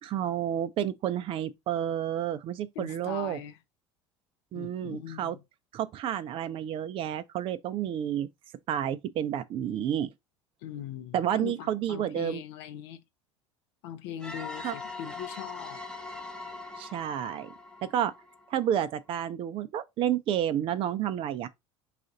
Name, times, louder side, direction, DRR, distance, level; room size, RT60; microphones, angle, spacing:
voice 1, 0.0-3.4 4.5-5.4 5.7-8.3 8.7-10.1 11.1-12.4 14.6-14.8 16.8-17.5 17.9-18.1 18.5-21.5, right 10 dB, 35° right, 0.4 m, -30 dB
voice 2, 2.8-3.5 4.5-5.4 10.6-13.0 13.8-15.8, left 10 dB, 60° left, 0.6 m, -41 dB
sound 1, 14.2-18.8, left 3 dB, 5° left, 0.8 m, -42 dB
4.8 x 2.5 x 3.8 m
figure-of-eight pair, 65°, 16 cm